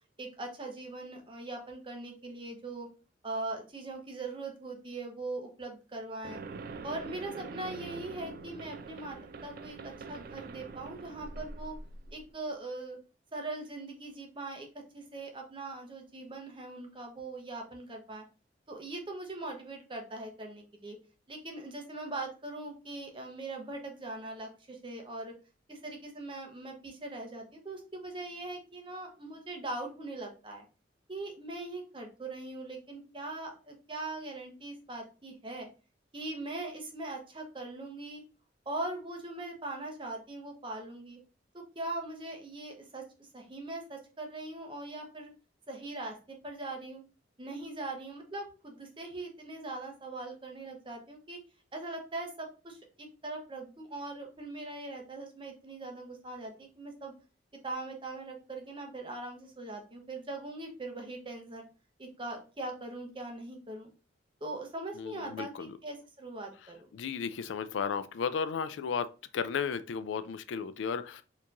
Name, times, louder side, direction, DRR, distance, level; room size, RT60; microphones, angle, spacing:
voice 1, 0.2-2.9 3.2-6.4 6.8-11.8 12.1-13.0 13.3-18.2 18.7-21.0 21.3-25.3 25.7-30.6 31.1-35.7 36.1-38.2 38.7-41.2 41.7-45.3 45.7-47.0 47.4-51.4 51.7-57.1 57.6-61.6 62.0-63.9 64.4-66.9, right 2 dB, 25° right, 0.8 m, -41 dB
sound 1, 6.2-12.3, right 4 dB, 50° right, 0.4 m, -44 dB
voice 2, 65.0-65.7 66.9-69.1 69.3-71.2, left 6 dB, 80° left, 0.4 m, -34 dB
4.4 x 2.9 x 2.5 m
head